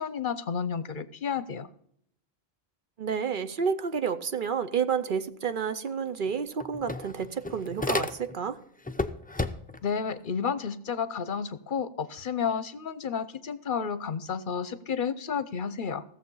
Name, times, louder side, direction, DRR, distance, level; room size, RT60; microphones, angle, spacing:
voice 1, 0.0-1.7 9.8-16.0, left 6 dB, 55° left, 15 dB, 0.8 m, -31 dB
voice 2, 3.0-8.6, right 6 dB, 55° right, 11 dB, 0.8 m, -30 dB
sound 1, 5.9-6.0 6.3-8.5 8.8-9.9, left 2 dB, 10° left, 0.4 m, -32 dB
16.0 x 7.4 x 5.4 m, 0.69 s
omnidirectional pair, 1.1 m